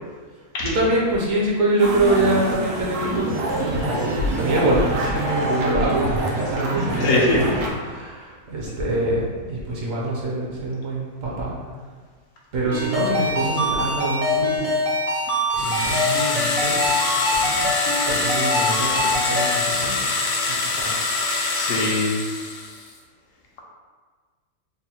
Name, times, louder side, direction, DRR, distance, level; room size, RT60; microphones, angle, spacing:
voice 1, 0.6-7.5 7.8-11.6 12.5-14.8 15.6-17.0 17.3-17.7 18.1-20.1 20.5-21.0, right 1 dB, 65° right, -4 dB, 1.2 m, -25 dB
sound 1, 1.8-7.7, right 1 dB, 85° right, 1.2 m, -25 dB
voice 2, 7.0-7.4 21.6-22.2, left 2 dB, 65° left, -3 dB, 1.0 m, -21 dB
Ringtone, 12.7-19.6, left 1 dB, 40° right, 0.5 m, -24 dB
sound 2, 15.6-22.9, left 3 dB, 90° left, 1.1 m, -25 dB
3.8 x 2.2 x 4.2 m, 1.5 s
omnidirectional pair, 1.6 m